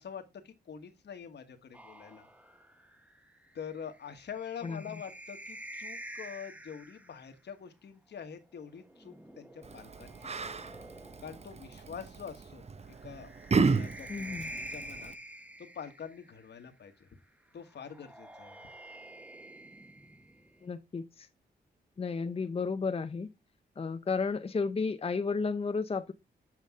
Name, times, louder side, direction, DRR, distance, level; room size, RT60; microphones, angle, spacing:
voice 1, 0.0-2.3 3.5-10.7 11.2-15.1 15.6-17.1 17.5-18.6, left 7 dB, 70° left, 1.4 m, -45 dB
sound 1, 1.7-7.3 8.6-11.6 13.0-16.5 17.7-20.6, right 1 dB, 5° right, 1.0 m, -48 dB
Yell, 9.6-15.1, right 4 dB, 35° right, 0.7 m, -33 dB
voice 2, 14.1-14.5 20.6-21.3 22.0-23.3 23.8-26.1, left 4 dB, 30° left, 0.6 m, -33 dB
7.6 x 5.2 x 3.6 m
cardioid pair, 70°, 18 cm